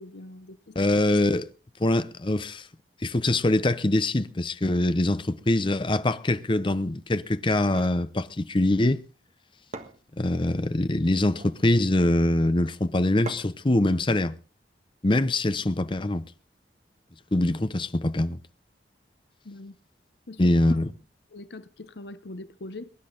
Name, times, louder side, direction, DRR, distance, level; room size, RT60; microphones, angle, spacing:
voice 1, 0.0-0.9 19.4-19.8 20.3-20.7 21.3-22.9, left 2 dB, 65° left, 0.8 m, -42 dB
voice 2, 0.8-1.5 1.8-2.7 3.0-9.0 10.2-14.4 15.0-16.2 17.3-18.4 20.4-20.9, left 1 dB, 25° left, 0.7 m, -23 dB
sound 1, 7.6-8.0 9.3-9.4 9.7-10.5 11.2-11.6 13.3-13.7, right 3 dB, 40° right, 1.5 m, -41 dB
22.5 x 10.5 x 3.9 m
head